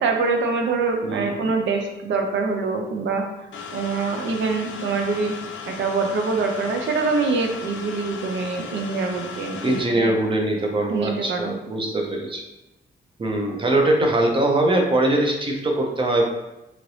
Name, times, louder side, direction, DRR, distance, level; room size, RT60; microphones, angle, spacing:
voice 1, 0.0-3.2 3.7-5.3 5.7-10.1 10.9-11.5, right 4 dB, 80° right, 3 dB, 0.5 m, -24 dB
sound 1, 3.5-9.8, left 5 dB, 80° left, 0.4 m, -36 dB
voice 2, 9.6-12.4 13.2-16.3, right 1 dB, 25° right, 1 dB, 0.5 m, -22 dB
3.1 x 2.9 x 2.6 m, 0.96 s
wide cardioid pair, 160°, 19 cm